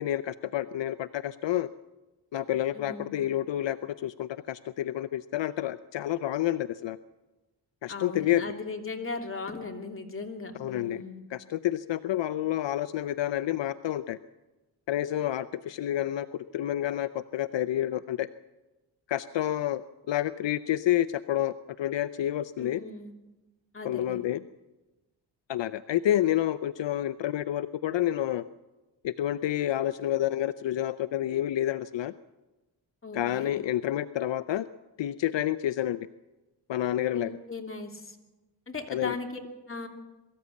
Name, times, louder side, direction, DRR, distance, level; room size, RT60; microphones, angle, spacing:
voice 1, 0.0-1.7 2.3-7.0 7.8-8.4 10.6-11.0 11.3-14.2 14.9-18.3 19.1-22.8 23.8-24.4 25.5-28.4 29.0-32.1 33.1-34.7 35.0-36.1 36.7-37.4 38.9-39.1, left 12 dB, 75° left, 13 dB, 0.7 m, -29 dB
voice 2, 2.7-3.2 7.9-11.2 22.6-23.1 23.7-24.2 33.0-33.5 37.1-38.2 38.7-39.4 39.7-39.9, left 3 dB, 30° left, 2 dB, 2.9 m, -38 dB
22.5 x 14.0 x 8.3 m, 1.1 s
cardioid pair, 85°, 44 cm